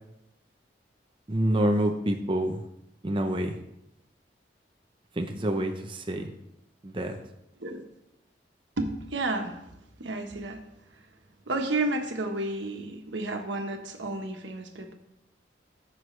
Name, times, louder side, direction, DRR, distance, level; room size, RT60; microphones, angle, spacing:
voice 1, 1.3-2.6 3.0-3.6 5.2-6.3 6.8-7.2, right 1 dB, 30° right, 4 dB, 0.7 m, -27 dB
voice 2, 8.8-9.6 10.0-10.6 11.5-14.9, right 2 dB, 90° right, 4 dB, 1.3 m, -31 dB
14.5 x 6.2 x 3.3 m, 0.84 s
head